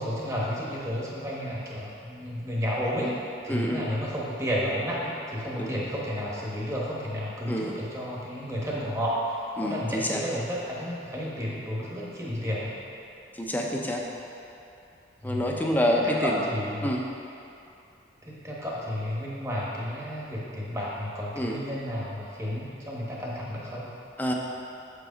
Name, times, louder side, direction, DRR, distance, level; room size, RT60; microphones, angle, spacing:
voice 1, 0.0-3.2 3.4-12.8 15.2-15.6 16.0-16.9 18.2-23.9, equal, 15° right, -6 dB, 1.2 m, -32 dB
voice 2, 3.5-3.9 5.6-5.8 7.5-7.8 9.6-10.2 13.4-14.0 15.2-16.4 16.8-17.0 21.4-21.6 24.2-24.3, equal, 10° left, -1 dB, 0.6 m, -27 dB
7.6 x 4.9 x 5.1 m, 2.7 s
head